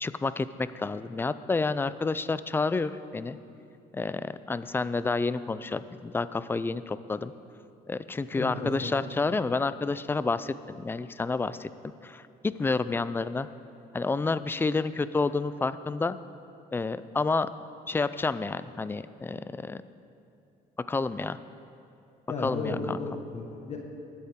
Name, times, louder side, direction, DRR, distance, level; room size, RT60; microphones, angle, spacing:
voice 1, 0.0-3.4 3.9-7.3 7.9-11.7 12.0-13.5 13.9-16.2 16.7-17.5 17.9-19.8 20.9-21.4 22.4-23.0, left 3 dB, 15° left, 14 dB, 0.4 m, -29 dB
voice 2, 8.3-8.7 22.3-23.8, left 3 dB, 40° left, 0 dB, 1.6 m, -34 dB
20.0 x 8.6 x 3.7 m, 2.6 s
cardioid pair, 110°, 17 cm